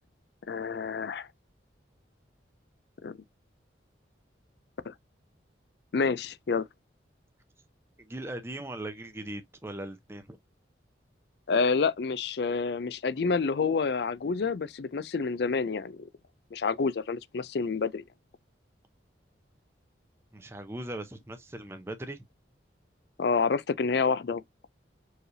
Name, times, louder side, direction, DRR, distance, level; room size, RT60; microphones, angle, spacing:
voice 1, 0.5-1.3 3.0-3.2 4.9-5.0 5.9-6.7 11.5-16.1 16.5-18.0 23.2-24.4, left 4 dB, 60° left, 0.4 m, -28 dB
voice 2, 8.0-10.4 20.3-22.2, right 1 dB, 15° right, 0.6 m, -39 dB
4.7 x 3.3 x 2.6 m
head